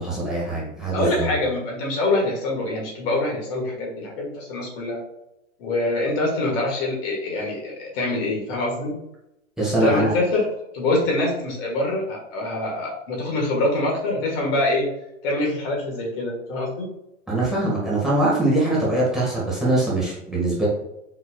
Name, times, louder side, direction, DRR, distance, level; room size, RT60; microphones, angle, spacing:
voice 1, 0.0-1.3 9.6-10.1 17.3-20.7, right 2 dB, ahead, -6 dB, 1.5 m, -22 dB
voice 2, 0.9-5.0 5.6-8.9 9.7-10.5 10.7-14.9 15.2-16.9, left 2 dB, 45° left, -2 dB, 1.6 m, -24 dB
4.6 x 4.0 x 2.3 m, 0.85 s
hypercardioid pair, 110°, 39 cm